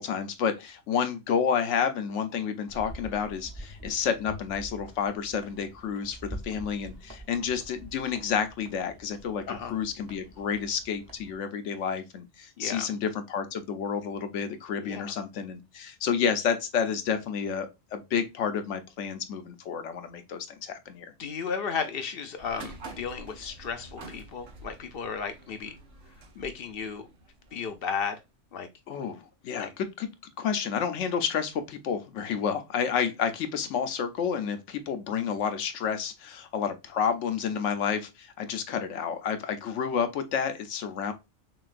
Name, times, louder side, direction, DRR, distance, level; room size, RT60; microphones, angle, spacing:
voice 1, 0.0-9.4 9.7-21.1 28.9-30.1 30.4-41.1, left 7 dB, 85° left, 1.0 m, -30 dB
sound 1, 2.7-11.3, equal, 20° right, 0.8 m, -46 dB
voice 2, 12.6-12.9 14.8-15.1 21.2-25.7 26.4-27.1 27.5-28.2 28.5-28.7 29.6-29.7, left 6 dB, 60° left, 0.7 m, -34 dB
sound 2, 22.4-28.2, right 2 dB, 90° right, 1.2 m, -47 dB
5.8 x 2.4 x 2.4 m
omnidirectional pair, 1.2 m